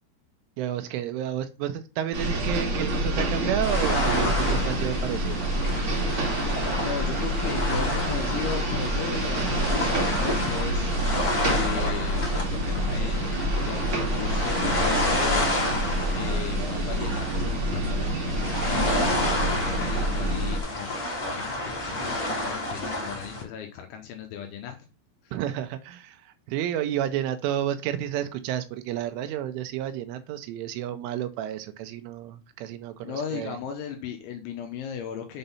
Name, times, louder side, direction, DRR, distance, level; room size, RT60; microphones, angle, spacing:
voice 1, 0.6-5.5 25.3-33.6, right 11 dB, 80° right, 8 dB, 3.1 m, -31 dB
sound 1, 2.1-20.6, right 1 dB, 60° right, 1.3 m, -27 dB
sound 2, 3.6-23.4, left 1 dB, 35° left, 1.5 m, -30 dB
voice 2, 6.8-15.8 16.2-24.8 25.2-25.3 33.0-35.4, left 8 dB, 80° left, 4 dB, 3.1 m, -36 dB
7.8 x 4.0 x 5.6 m, 0.32 s
omnidirectional pair, 5.7 m